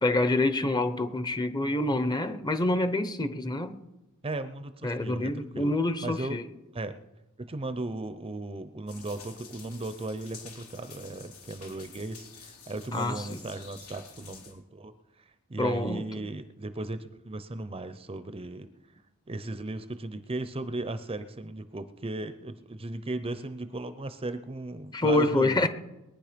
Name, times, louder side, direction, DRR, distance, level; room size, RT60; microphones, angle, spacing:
voice 1, 0.0-3.8 4.8-6.5 12.9-13.4 15.6-16.0 24.9-25.7, left 2 dB, 20° left, 0.9 m, -27 dB
voice 2, 4.2-5.7 6.0-6.4 6.7-7.0 7.4-14.9 15.5-18.7 19.3-25.7, right 2 dB, 25° right, 0.7 m, -36 dB
sound 1, 8.9-14.5, left 6 dB, 90° left, 3.6 m, -49 dB
21.0 x 10.0 x 5.2 m
head